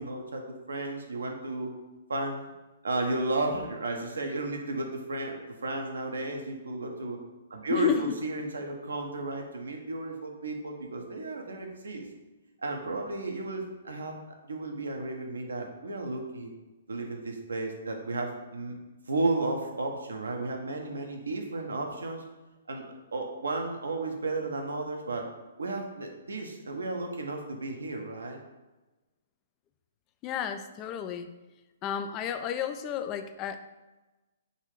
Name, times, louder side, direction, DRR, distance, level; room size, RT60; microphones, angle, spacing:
voice 1, 0.0-1.7 2.1-2.4 2.8-7.2 7.5-12.0 12.6-14.2 14.4-16.5 16.9-18.7 19.1-22.2 22.7-22.9 23.1-25.3 25.6-28.4, right 2 dB, 85° right, 2 dB, 0.8 m, -33 dB
voice 2, 7.7-8.2 30.2-31.3 31.8-33.6, left 9 dB, 30° left, 9 dB, 0.4 m, -31 dB
4.0 x 2.7 x 4.8 m, 1.1 s
hypercardioid pair, 130°, 0 cm